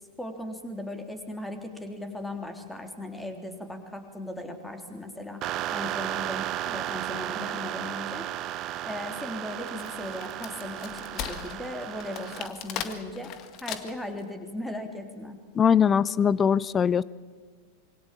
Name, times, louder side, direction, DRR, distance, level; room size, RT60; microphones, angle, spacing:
voice 1, 0.2-8.3 8.8-13.3 13.6-15.4, left 1 dB, 5° left, 5 dB, 3.5 m, -37 dB
sound 1, 5.4-12.5, right 13 dB, 35° right, 1.0 m, -34 dB
Wood, 9.5-14.2, left 9 dB, 35° left, 1.8 m, -38 dB
voice 2, 15.6-17.0, left 7 dB, 20° left, 21 dB, 0.7 m, -21 dB
26.0 x 24.0 x 7.3 m, 1.5 s
figure-of-eight pair, 90°, 0 cm